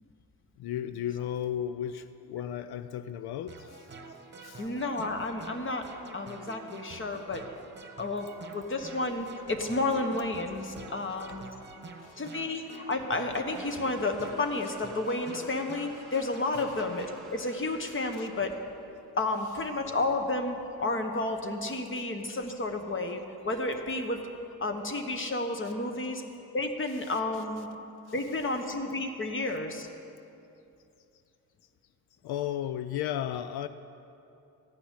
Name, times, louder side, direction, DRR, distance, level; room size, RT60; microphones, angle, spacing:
voice 1, 0.6-3.9 4.4-4.7 12.0-12.2 18.2-18.3 22.0-22.1 32.2-33.7, left 10 dB, 85° left, 12 dB, 0.5 m, -34 dB
sound 1, 3.5-17.2, right 3 dB, 30° right, 1.1 m, -48 dB
voice 2, 4.6-7.4 8.0-11.4 12.2-18.6 19.2-24.2 24.6-26.2 26.5-27.7 28.1-29.9, left 2 dB, 35° left, 5 dB, 1.3 m, -31 dB
sound 2, 13.5-19.1, right 1 dB, ahead, 2.0 m, -51 dB
14.5 x 5.9 x 10.0 m, 2.8 s
cardioid pair, 90°, 37 cm